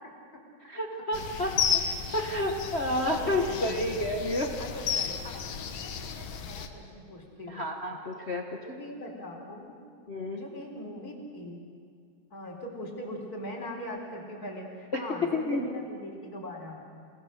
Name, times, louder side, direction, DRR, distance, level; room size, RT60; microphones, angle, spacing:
voice 1, 0.6-1.5 2.1-4.5 7.5-8.8 10.1-10.4 14.9-15.0 15.3-15.7, left 1 dB, 45° left, 1 dB, 0.8 m, -30 dB
sound 1, 1.1-6.7, left 7 dB, 70° left, 2.4 m, -33 dB
voice 2, 3.0-4.0 4.6-7.7 8.6-9.8 10.3-11.6 12.3-16.8, left 1 dB, 30° left, -1 dB, 4.2 m, -41 dB
28.5 x 19.0 x 6.6 m, 2.2 s
omnidirectional pair, 3.4 m